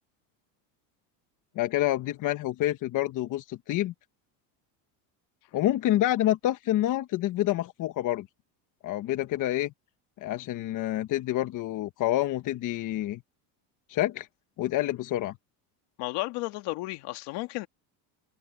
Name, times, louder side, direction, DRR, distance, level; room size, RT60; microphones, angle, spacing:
voice 1, 1.5-3.9 5.5-8.3 8.8-9.7 10.2-13.2 13.9-14.3 14.6-15.3, left 14 dB, 45° left, 1.2 m, -28 dB
voice 2, 16.0-17.7, left 21 dB, 65° left, 2.0 m, -33 dB
supercardioid pair, 135°, 44 cm